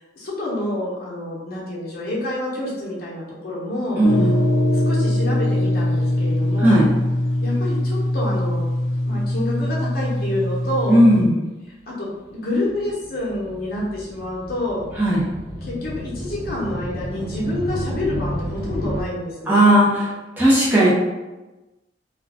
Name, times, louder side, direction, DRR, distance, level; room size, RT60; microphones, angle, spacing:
voice 1, 0.2-4.3 4.7-6.8 7.4-8.6 9.0-11.0 11.9-14.8 15.6-19.7, left 1 dB, 50° left, -6 dB, 0.9 m, -28 dB
voice 2, 3.9-4.3 6.6-6.8 10.9-11.4 15.0-15.2 19.5-20.1 20.4-20.9, right 1 dB, 10° right, -8 dB, 0.6 m, -15 dB
sound 1, 4.0-11.2, left 1 dB, 75° left, 0.6 m, -22 dB
sound 2, 12.5-19.0, equal, 50° right, 1.0 m, -31 dB
2.4 x 2.3 x 3.4 m, 1.1 s
head